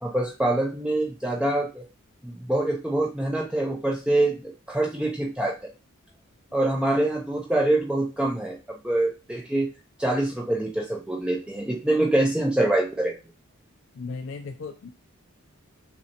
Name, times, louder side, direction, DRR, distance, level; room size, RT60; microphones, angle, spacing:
voice 1, 0.0-1.8 2.2-5.7 6.5-9.7 10.0-13.1, right 1 dB, 5° right, -1 dB, 0.3 m, -25 dB
voice 2, 14.0-14.9, left 4 dB, 65° left, 6 dB, 0.4 m, -36 dB
5.6 x 3.0 x 2.8 m, 0.33 s
head